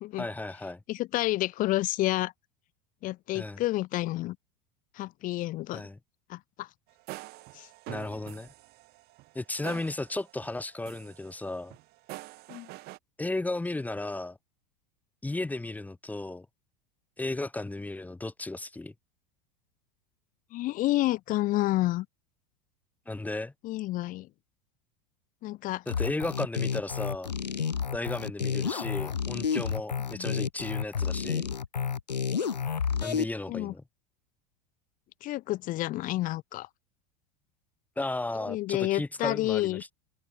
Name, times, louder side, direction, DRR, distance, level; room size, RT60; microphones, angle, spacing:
voice 1, 0.2-0.8 3.3-3.6 5.7-6.0 7.9-8.5 9.3-11.8 13.2-14.4 15.2-16.5 17.2-18.9 23.1-23.5 25.9-27.3 27.9-31.5 33.0-33.8 38.0-39.9, left 2 dB, 5° left, 1.2 m, -34 dB
voice 2, 0.9-2.3 3.0-4.4 5.0-5.8 6.3-6.7 7.5-7.7 12.5-12.7 20.5-22.1 23.6-24.3 25.4-25.8 30.1-30.4 33.5-33.7 35.2-36.7 38.5-39.8, left 17 dB, 40° left, 1.0 m, -29 dB
sound 1, 6.9-10.6 10.8-13.0, right 20 dB, 50° right, 6.9 m, -46 dB
sound 2, 25.9-33.2, left 6 dB, 80° left, 2.6 m, -30 dB
figure-of-eight pair, 80°, 21 cm